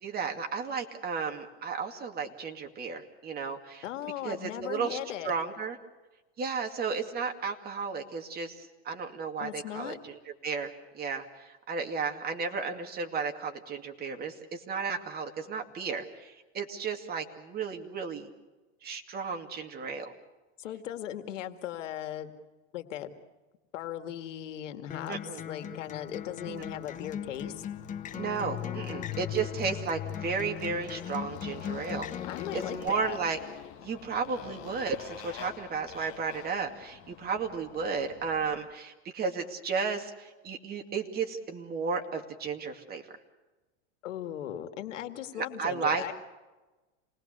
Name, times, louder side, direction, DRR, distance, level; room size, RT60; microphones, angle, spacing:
voice 1, 0.0-3.8 4.2-5.0 5.2-5.8 6.4-18.3 18.8-20.1 25.1-25.4 26.5-26.6 28.1-32.1 32.5-33.4 33.8-43.0 45.4-46.0, right 5 dB, 25° right, 4 dB, 2.4 m, -34 dB
voice 2, 3.8-5.3 9.4-10.0 20.6-22.3 22.7-23.1 23.7-27.6 32.3-33.2 44.0-46.1, left 11 dB, 90° left, 8 dB, 2.2 m, -38 dB
Acoustic guitar, 24.9-32.9, left 9 dB, 20° left, 1.0 m, -40 dB
Motorcycle, 26.0-38.7, left 13 dB, 40° left, 1.4 m, -44 dB
28.0 x 20.0 x 6.7 m, 1.1 s
supercardioid pair, 140°, 36 cm